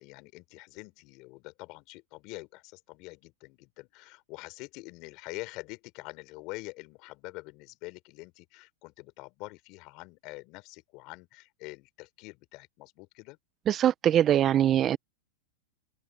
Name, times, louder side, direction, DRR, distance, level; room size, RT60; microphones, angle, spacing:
voice 1, 0.0-13.4, left 24 dB, 45° left, 3.6 m, -45 dB
voice 2, 13.7-15.0, right 11 dB, 30° right, 0.5 m, -22 dB
hypercardioid pair, 125°, 0 cm